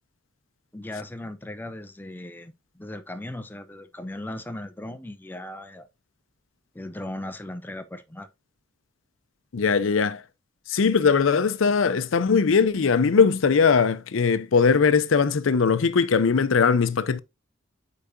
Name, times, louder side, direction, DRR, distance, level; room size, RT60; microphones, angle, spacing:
voice 1, 0.7-5.9 6.7-8.3, left 1 dB, 10° left, 0.5 m, -37 dB
voice 2, 9.5-10.2 10.7-17.2, left 5 dB, 75° left, 0.5 m, -20 dB
8.3 x 4.8 x 2.6 m
head